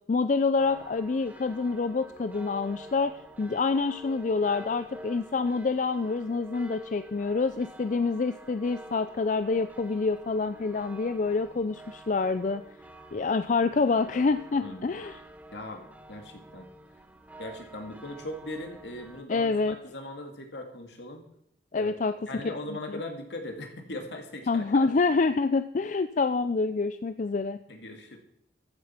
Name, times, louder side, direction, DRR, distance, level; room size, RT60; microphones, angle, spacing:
voice 1, 0.1-12.6 13.1-15.2 19.3-19.8 21.7-22.4 22.7-23.0 24.5-27.6, left 4 dB, 45° left, 11 dB, 0.4 m, -27 dB
sound 1, 0.6-19.2, right 1 dB, 10° right, 0.9 m, -48 dB
voice 2, 14.6-15.0 15.5-16.7 17.4-21.2 21.7-21.9 22.3-24.9 27.7-28.2, left 1 dB, 75° left, 4 dB, 2.3 m, -39 dB
14.0 x 7.7 x 5.8 m, 0.74 s
head